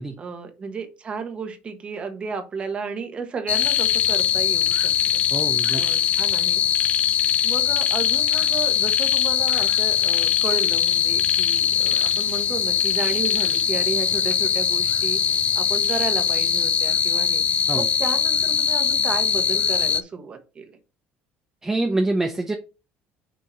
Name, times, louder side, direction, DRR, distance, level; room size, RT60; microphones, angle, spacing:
voice 1, 0.2-5.2 5.8-6.6 7.4-17.4 17.7-20.7, right 5 dB, 30° right, 7 dB, 1.2 m, -33 dB
sound 1, 3.5-20.0, left 8 dB, 30° left, 0.3 m, -21 dB
voice 2, 5.3-5.8 17.7-17.9 21.6-22.5, right 2 dB, 10° right, 5 dB, 0.6 m, -25 dB
6.3 x 2.9 x 5.6 m, 0.31 s
cardioid pair, 150°, 4 cm